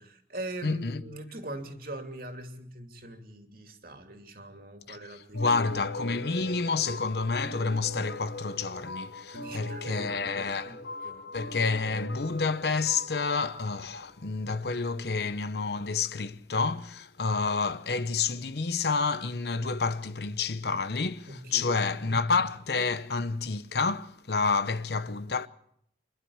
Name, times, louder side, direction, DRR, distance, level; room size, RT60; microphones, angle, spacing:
voice 1, 0.0-5.6 9.3-11.2 21.3-21.8, right 1 dB, 50° right, 2.8 m, -42 dB
voice 2, 0.6-1.0 4.9-5.0 5.3-10.8 11.3-25.5, left 4 dB, 65° left, 0.9 m, -29 dB
sound 1, 5.3-14.6, left 1 dB, 85° left, 5.0 m, -41 dB
27.5 x 11.5 x 8.7 m
head